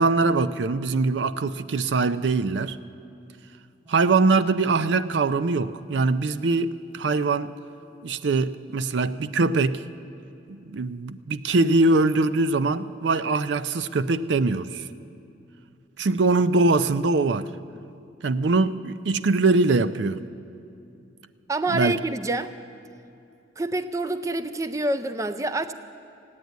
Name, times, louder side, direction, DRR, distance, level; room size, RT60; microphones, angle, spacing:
voice 1, 0.0-2.8 3.9-7.5 8.0-9.8 10.5-14.9 16.0-17.5 18.2-20.2 21.7-21.9, right 3 dB, 75° right, 14 dB, 0.5 m, -22 dB
voice 2, 21.5-22.5 23.6-25.7, right 2 dB, 15° right, 12 dB, 0.4 m, -27 dB
16.0 x 9.4 x 9.2 m, 2.7 s
head